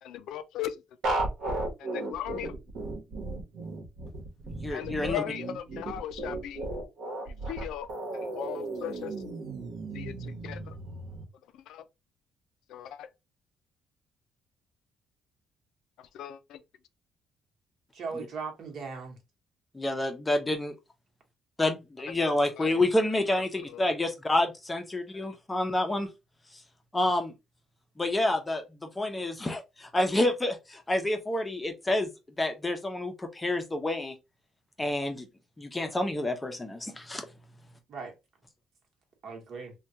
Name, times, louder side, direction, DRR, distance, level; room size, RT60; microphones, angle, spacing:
voice 1, 0.0-0.8 1.8-2.6 4.7-6.7 7.2-7.9 8.1-9.1 9.9-10.8 11.5-11.9 12.7-13.1 16.0-16.6 22.1-22.2 22.6-22.9 23.6-23.8 25.1-25.4, left 11 dB, 85° left, 0.4 m, -38 dB
sound 1, 1.0-11.2, right 2 dB, 80° right, 1.0 m, -35 dB
voice 2, 4.6-5.2 19.7-20.7 21.6-26.1 26.9-27.3 28.0-28.6 29.0-32.1 32.4-34.1 34.8-35.3 35.6-37.2, left 1 dB, 15° left, 0.6 m, -28 dB
voice 3, 17.9-19.2 37.9-38.1 39.2-39.7, right 5 dB, 55° right, 1.1 m, -38 dB
3.3 x 2.3 x 2.7 m
cardioid pair, 125°, 0 cm